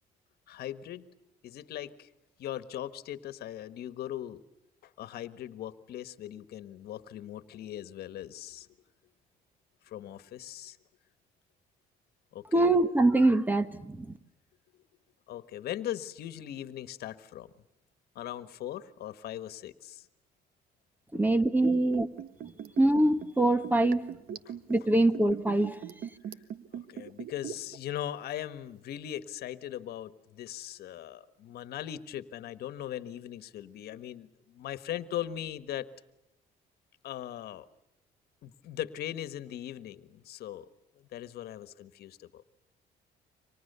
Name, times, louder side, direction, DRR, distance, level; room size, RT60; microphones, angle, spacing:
voice 1, 0.5-1.1 1.4-2.1 2.4-4.4 4.8-8.7 9.8-10.8 12.3-12.7 15.3-17.5 18.1-20.1 24.4-24.5 26.7-35.9 37.0-37.6 38.4-40.7 40.9-42.4, left 12 dB, 70° left, 13 dB, 1.5 m, -39 dB
voice 2, 12.5-14.0 21.1-22.1 22.8-24.0 24.7-25.8, right 2 dB, 10° right, 12 dB, 1.3 m, -24 dB
Liquid, 21.6-27.8 28.1-28.2, right 9 dB, 65° right, 1.5 m, -41 dB
30.0 x 25.5 x 6.9 m, 0.90 s
cardioid pair, 110°, 17 cm